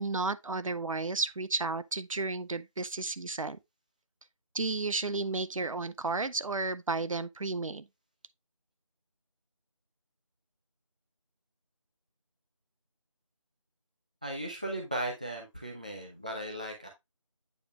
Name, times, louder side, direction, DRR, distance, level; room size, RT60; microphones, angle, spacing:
voice 1, 0.0-3.6 4.5-7.9, right 3 dB, 75° right, 0.6 m, -32 dB
voice 2, 14.2-16.9, right 1 dB, 15° right, 0.6 m, -37 dB
8.5 x 5.0 x 2.4 m
figure-of-eight pair, 170°, 17 cm